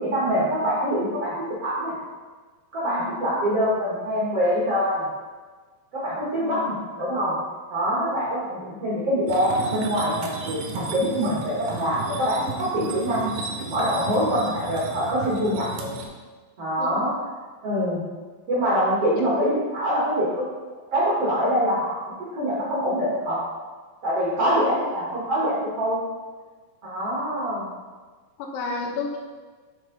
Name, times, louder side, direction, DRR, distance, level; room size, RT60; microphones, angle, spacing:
voice 1, 0.0-1.3 1.6-1.9 2.7-5.0 5.9-7.3 7.7-13.3 13.7-16.0 16.6-17.1 17.6-18.0 18.5-20.4 20.9-22.0 22.3-23.4 24.0-26.0 26.8-27.7, equal, 65° right, -8 dB, 1.4 m, -24 dB
voice 2, 2.8-3.4 6.4-6.7 8.0-8.2 12.4-12.5 16.8-17.0 19.1-19.2 24.4-24.8 28.4-29.2, left 4 dB, 80° left, 1 dB, 3.0 m, -33 dB
sound 1, 9.3-16.1, right 4 dB, 90° right, 3.4 m, -34 dB
10.0 x 4.6 x 4.0 m, 1.4 s
omnidirectional pair, 5.7 m